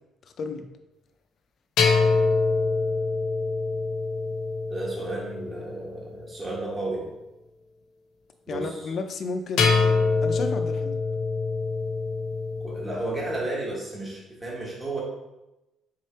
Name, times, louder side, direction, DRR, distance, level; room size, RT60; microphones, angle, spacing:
sound 1, 1.8-6.1 9.6-13.4, left 4 dB, 85° left, 0.7 m, -25 dB
voice 1, 4.7-7.1 8.5-8.9 12.6-15.0, right 2 dB, 20° right, -4 dB, 1.2 m, -33 dB
voice 2, 8.5-9.8 10.2-11.0, left 4 dB, 45° left, 6 dB, 0.4 m, -32 dB
3.6 x 3.2 x 4.3 m, 0.99 s
cardioid pair, 150°, 0 cm